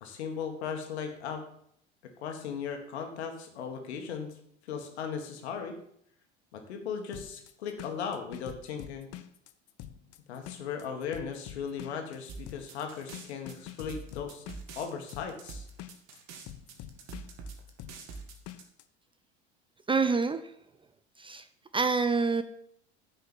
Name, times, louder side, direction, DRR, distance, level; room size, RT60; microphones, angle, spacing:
voice 1, 0.0-1.4 2.2-4.4 4.6-5.8 6.5-9.1 10.3-14.5 14.8-15.7, left 6 dB, 70° left, 4 dB, 2.0 m, -37 dB
sound 1, 7.1-18.8, left 12 dB, 45° left, 0.8 m, -46 dB
sound 2, 12.3-18.6, right 4 dB, 50° right, 1.9 m, -45 dB
voice 2, 19.9-20.4 21.2-21.5 21.7-22.4, right 4 dB, 15° right, 10 dB, 0.6 m, -26 dB
9.7 x 5.5 x 7.2 m, 0.69 s
figure-of-eight pair, 75°, 34 cm